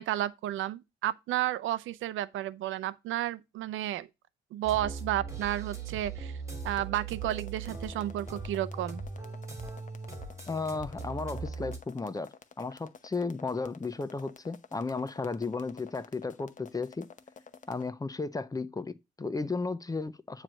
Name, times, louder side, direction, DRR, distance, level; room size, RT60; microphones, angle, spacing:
voice 1, 0.0-4.1 4.5-6.4 6.6-9.0, right 13 dB, 80° right, 0.6 m, -32 dB
sound 1, 4.6-11.8, right 4 dB, 15° right, 3.1 m, -39 dB
sound 2, 6.6-17.9, left 6 dB, 40° left, 0.9 m, -52 dB
voice 2, 10.5-17.1 17.7-20.4, left 4 dB, 20° left, 0.6 m, -34 dB
8.9 x 3.2 x 6.3 m
cardioid pair, 90°, 20 cm